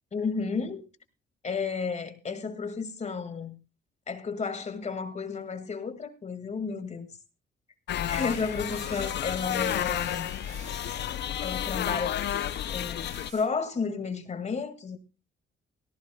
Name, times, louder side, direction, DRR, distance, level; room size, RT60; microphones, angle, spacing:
voice 1, 0.1-0.9 1.4-3.6 4.1-7.1 8.1-10.3 11.4-12.2 12.7-15.0, left 5 dB, 35° left, 2.0 m, -32 dB
sound 1, 7.9-13.3, left 11 dB, 60° left, 0.5 m, -31 dB
sound 2, 8.1-13.5, right 3 dB, 35° right, 6.0 m, -48 dB
17.5 x 15.0 x 2.3 m
cardioid pair, 90°, 20 cm